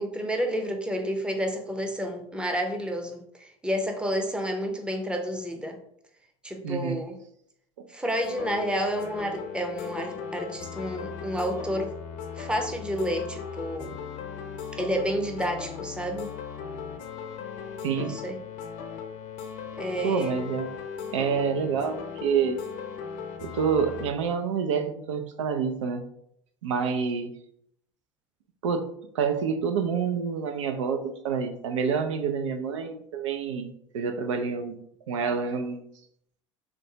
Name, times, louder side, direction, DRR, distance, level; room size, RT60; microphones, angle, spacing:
voice 1, 0.0-5.8 6.4-7.2 7.9-11.9 12.4-13.9 14.7-16.4 18.0-18.4 19.8-20.3, equal, 5° right, 4 dB, 0.6 m, -30 dB
voice 2, 6.6-7.0 17.8-18.1 20.0-20.7 21.1-22.6 23.4-26.0 26.6-27.3 28.6-28.9 29.1-34.8 35.1-35.8, right 6 dB, 80° right, 7 dB, 0.4 m, -27 dB
sound 1, 8.2-24.1, left 7 dB, 55° left, 0.6 m, -38 dB
3.8 x 2.2 x 2.8 m, 0.70 s
hypercardioid pair, 80°, 16 cm